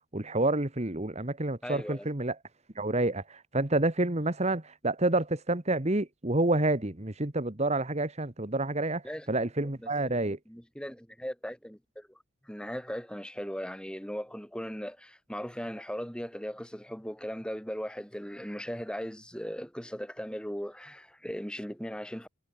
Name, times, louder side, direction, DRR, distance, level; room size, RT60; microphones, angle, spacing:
voice 1, 0.1-2.3 2.7-9.0 9.3-10.4, right 2 dB, 30° right, 1.5 m, -28 dB
voice 2, 1.6-2.1 9.0-9.3 9.8-12.2 12.4-22.3, equal, 5° left, 4.4 m, -38 dB
head